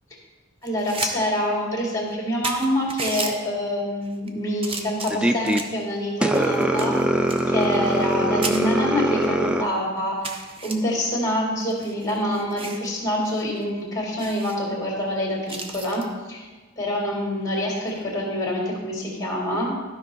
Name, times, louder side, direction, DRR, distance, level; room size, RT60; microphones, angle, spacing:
voice 1, 0.6-7.0 7.5-10.3 10.6-16.0 16.3-16.5 16.8-19.7, equal, 20° left, -2 dB, 2.2 m, -26 dB
sound 1, 0.6-1.1 1.5-1.6 2.1-2.2 2.4-3.3 4.0-4.3 4.6-5.8 6.3-8.2 8.4-8.6 9.2-9.3 9.6-9.7 10.2-10.7 11.6-12.9 13.2-13.4 13.7-13.8 14.2-14.6 15.5-16.1 17.8-18.0, right 3 dB, 30° right, 0.7 m, -33 dB
sound 2, 5.1-5.6 6.2-9.6, right 1 dB, 5° right, 0.3 m, -22 dB
12.5 x 5.3 x 3.9 m, 1.3 s
head